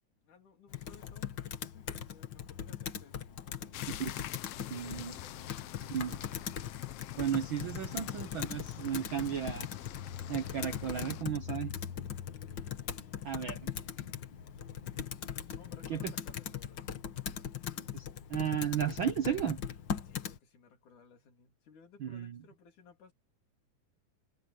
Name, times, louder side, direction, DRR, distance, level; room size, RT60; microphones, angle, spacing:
voice 1, 0.1-5.5 5.8-5.9 13.0-13.5 14.0-14.9 15.6-17.6 20.0-23.1, left 6 dB, 70° left, 4.8 m, -60 dB
Computer keyboard, 0.7-20.4, left 8 dB, 50° left, 1.4 m, -40 dB
sound 1, 3.7-11.2, left 14 dB, 85° left, 1.3 m, -46 dB
voice 2, 4.7-5.1 5.9-6.1 7.2-9.7 10.3-11.7 13.2-13.7 15.9-16.1 17.9-19.6 22.0-22.4, right 9 dB, 75° right, 1.1 m, -34 dB
omnidirectional pair, 3.7 m